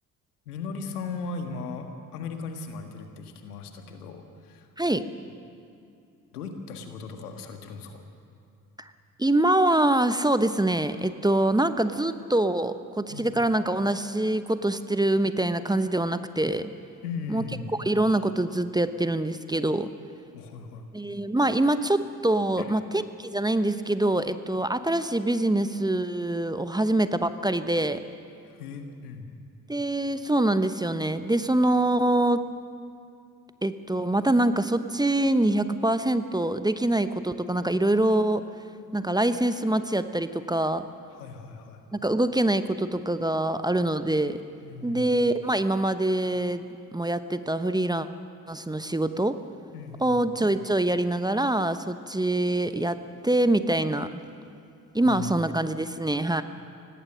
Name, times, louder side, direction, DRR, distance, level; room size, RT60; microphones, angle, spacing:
voice 1, 0.4-4.7 6.3-8.0 13.1-13.3 17.0-17.8 20.3-20.9 22.6-22.7 28.4-29.3 41.1-41.8 44.6-45.1 49.7-50.2 55.0-55.4, left 4 dB, 80° left, 6 dB, 1.7 m, -37 dB
voice 2, 9.2-16.7 17.3-17.4 17.8-19.9 20.9-28.0 29.7-32.5 33.6-38.4 38.9-40.9 42.0-44.4 44.8-46.7 46.9-48.1 48.5-49.4 50.0-54.2 54.9-56.4, right 1 dB, 10° right, 11 dB, 1.0 m, -24 dB
25.0 x 18.5 x 6.5 m, 2.5 s
figure-of-eight pair, 45°, 45 cm